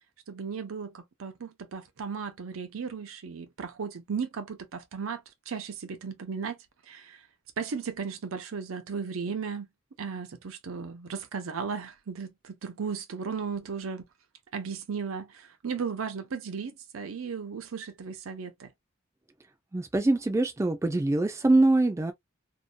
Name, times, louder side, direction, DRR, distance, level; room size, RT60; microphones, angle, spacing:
voice 1, 0.3-6.6 6.9-7.3 7.6-9.7 10.0-14.1 14.5-18.7, right 6 dB, 85° right, 0.6 m, -35 dB
voice 2, 19.7-22.1, right 2 dB, 15° right, 0.3 m, -23 dB
2.6 x 2.1 x 2.5 m
head